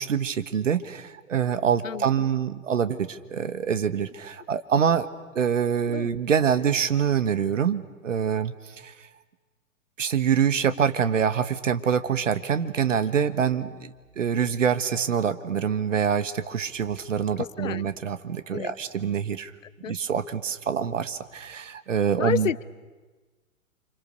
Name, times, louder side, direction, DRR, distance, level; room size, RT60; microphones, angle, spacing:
voice 1, 0.0-5.1 5.3-8.9 10.0-19.5 19.9-22.5, right 7 dB, 60° right, 12 dB, 1.5 m, -25 dB
voice 2, 17.4-17.8 18.5-18.7 19.6-19.9 22.2-22.6, left 8 dB, 65° left, 19 dB, 0.8 m, -30 dB
29.5 x 26.0 x 6.7 m, 1.3 s
figure-of-eight pair, 115°, 42 cm